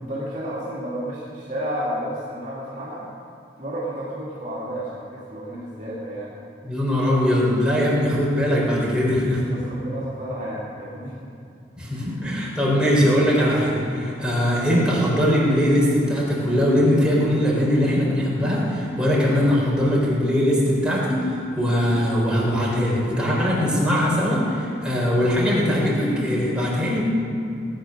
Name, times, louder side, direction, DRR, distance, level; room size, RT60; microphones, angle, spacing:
voice 1, 0.0-3.1 3.6-6.4 9.4-11.3 11.9-12.2, equal, 45° right, -6 dB, 2.2 m, -32 dB
voice 2, 6.6-9.4 11.8-27.0, equal, 5° right, -6 dB, 3.7 m, -21 dB
18.0 x 9.2 x 6.4 m, 2.5 s
head